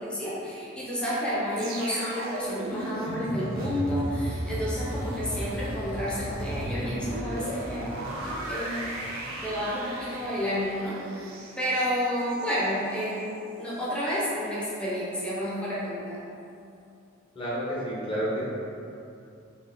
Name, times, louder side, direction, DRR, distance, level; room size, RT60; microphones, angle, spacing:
voice 1, 0.0-7.9 8.5-8.9 9.4-11.0 11.6-13.2 13.6-16.2, equal, 5° left, -8 dB, 0.6 m, -30 dB
sound 1, 1.6-12.7 13.0-13.2, right 1 dB, 75° right, 0.5 m, -34 dB
voice 2, 17.3-18.4, equal, 25° left, -8 dB, 1.0 m, -30 dB
4.2 x 2.2 x 3.7 m, 2.6 s
head